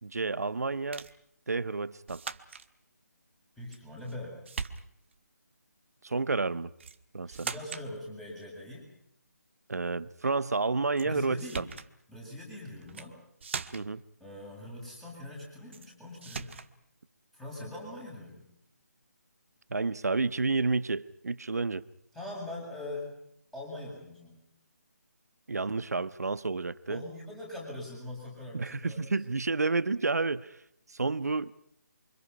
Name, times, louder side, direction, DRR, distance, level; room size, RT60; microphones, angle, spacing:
voice 1, 0.0-1.1 1.5-2.2 6.0-6.7 7.1-7.5 9.7-11.6 13.7-14.0 19.7-21.8 25.5-27.0 28.5-30.6 30.9-31.5, right 3 dB, 65° right, 1.2 m, -30 dB
sound 1, 0.9-1.2 2.1-2.7 3.7-4.2 4.5-5.2 6.8-7.0 7.3-7.9 11.0-11.1 11.4-11.9 12.8-13.1 13.4-14.0 15.7-15.9 16.2-16.7, right 5 dB, 45° right, 1.5 m, -40 dB
voice 2, 3.6-4.4 7.3-8.8 11.0-11.7 12.1-13.1 14.2-16.6 17.3-18.4 22.1-23.2 23.5-24.4 26.9-29.2, left 1 dB, ahead, 7.7 m, -42 dB
29.0 x 25.5 x 5.6 m
figure-of-eight pair, 155°, 9 cm